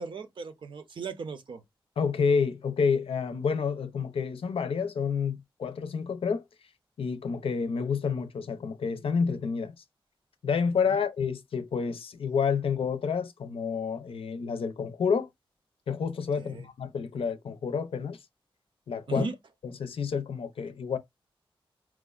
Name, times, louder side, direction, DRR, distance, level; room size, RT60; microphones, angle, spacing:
voice 1, 0.0-1.6 10.9-11.0 16.4-16.7 19.1-19.3, right 5 dB, 60° right, 0.6 m, -37 dB
voice 2, 2.0-6.4 7.0-9.7 10.4-15.3 15.9-18.2 18.9-19.3 19.8-21.0, left 6 dB, 80° left, 0.5 m, -29 dB
4.6 x 2.1 x 2.4 m
wide cardioid pair, 180°, 9 cm